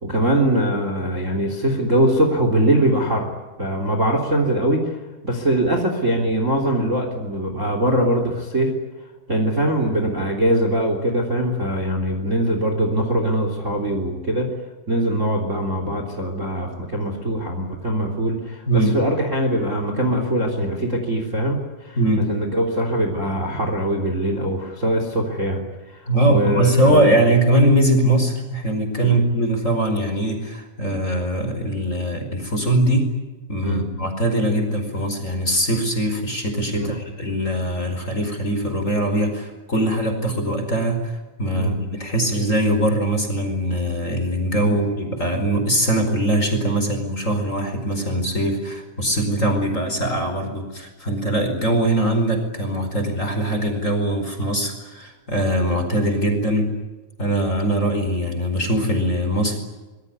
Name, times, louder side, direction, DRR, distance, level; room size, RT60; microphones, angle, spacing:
voice 1, 0.0-3.3 3.6-5.0 5.2-8.7 9.3-14.5 14.9-25.6 25.9-27.1 29.0-29.2 33.6-33.8 36.7-36.9 41.5-41.8 44.6-44.8, right 1 dB, 20° right, 4 dB, 3.3 m, -22 dB
voice 2, 26.1-33.1 33.5-41.1 41.4-56.7 57.2-59.6, right 1 dB, 20° left, 5 dB, 4.9 m, -21 dB
25.5 x 22.5 x 9.7 m, 1.2 s
omnidirectional pair, 4.3 m